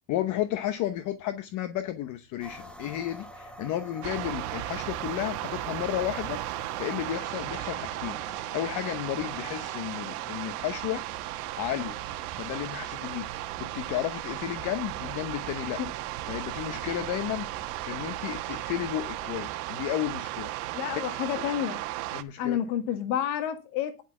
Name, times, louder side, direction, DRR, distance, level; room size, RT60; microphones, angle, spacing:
voice 1, 0.1-8.2 8.5-11.0 11.6-12.0 12.3-13.3 13.6-15.8 16.3-20.5 22.1-22.6, left 12 dB, 40° left, 0.8 m, -33 dB
sound 1, 2.4-19.4, equal, ahead, 1.2 m, -48 dB
sound 2, 4.0-22.2, right 16 dB, 65° right, 1.3 m, -35 dB
voice 2, 20.7-21.8 22.4-24.0, left 10 dB, 65° left, 1.7 m, -30 dB
10.0 x 6.0 x 7.0 m
supercardioid pair, 145°, 48 cm